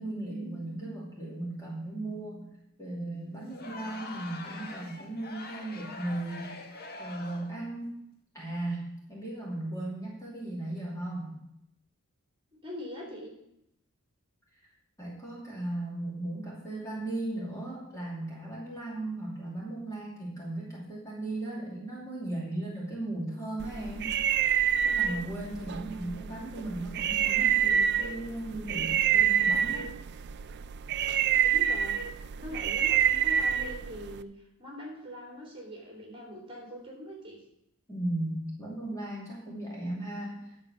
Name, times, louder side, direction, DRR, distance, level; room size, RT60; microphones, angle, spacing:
voice 1, 0.0-2.5 2.8-6.5 7.0-8.0 8.3-11.4 15.0-24.1 24.8-30.0 37.9-40.5, right 1 dB, 15° left, -5 dB, 2.7 m, -36 dB
Crowd, 3.5-7.6, left 3 dB, 45° left, 1.0 m, -44 dB
voice 2, 12.6-13.3 25.6-26.1 31.4-32.0 32.4-37.4, equal, 25° right, -2 dB, 3.3 m, -43 dB
sound 1, 23.6-34.2, right 9 dB, 50° right, 0.4 m, -27 dB
10.5 x 6.8 x 6.4 m, 0.80 s
head